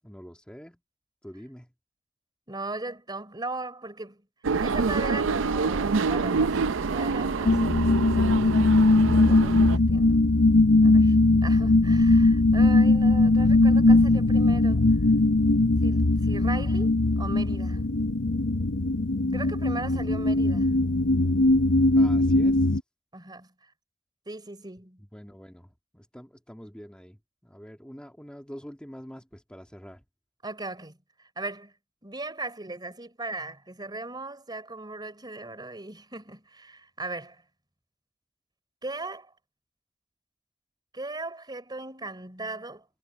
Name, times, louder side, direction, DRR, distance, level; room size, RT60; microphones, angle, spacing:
voice 1, 0.0-0.8 1.2-1.7 21.9-22.8 25.0-30.0, equal, 5° left, 1.9 m, -45 dB
voice 2, 2.5-4.2 4.6-7.6 7.9-10.4 10.7-14.8 15.8-18.1 19.3-20.8 23.1-23.5 24.3-25.0 30.4-31.7 32.0-37.4 38.8-39.3 40.9-42.9, right 2 dB, 20° right, 3.9 m, -38 dB
sound 1, 4.4-9.8, right 4 dB, 80° right, 0.6 m, -27 dB
sound 2, 7.5-22.8, left 2 dB, 75° left, 0.9 m, -20 dB
head